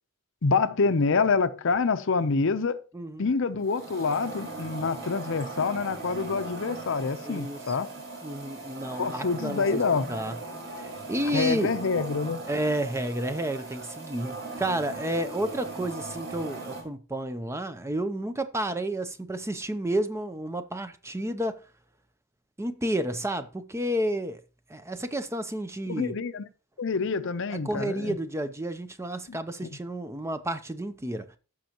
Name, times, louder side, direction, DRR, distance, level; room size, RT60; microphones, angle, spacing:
voice 1, 0.4-2.8 3.2-7.9 9.0-10.1 11.3-12.4 25.9-26.5 26.8-28.2 29.3-29.7, left 4 dB, 60° left, 0.6 m, -27 dB
voice 2, 2.9-3.3 7.2-7.6 8.2-9.8 10.1-10.4 10.8-11.7 12.5-21.6 22.6-24.4 24.7-26.1 27.5-31.3, right 1 dB, 10° right, 0.5 m, -31 dB
sound 1, 3.6-16.8, right 3 dB, 50° right, 2.9 m, -39 dB
14.5 x 6.2 x 2.9 m
head